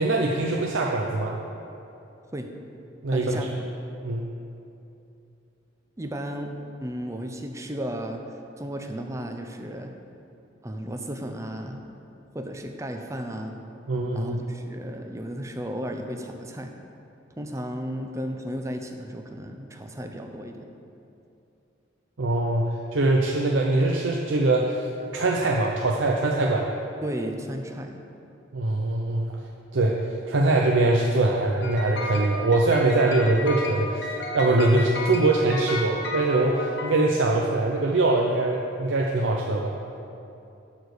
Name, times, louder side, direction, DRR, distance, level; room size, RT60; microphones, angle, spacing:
voice 1, 0.0-1.4 3.0-3.5 4.0-4.3 13.9-14.4 22.2-26.7 28.5-29.4 29.7-39.7, right 2 dB, 80° right, -1 dB, 0.7 m, -23 dB
voice 2, 3.1-3.5 6.0-8.2 8.6-9.9 10.6-11.8 12.3-13.6 14.1-16.7 17.4-20.7 27.0-28.0, equal, 15° right, 4 dB, 0.6 m, -34 dB
sound 1, 31.6-37.6, left 2 dB, 60° left, 1.2 m, -34 dB
11.5 x 4.2 x 6.6 m, 2.7 s
head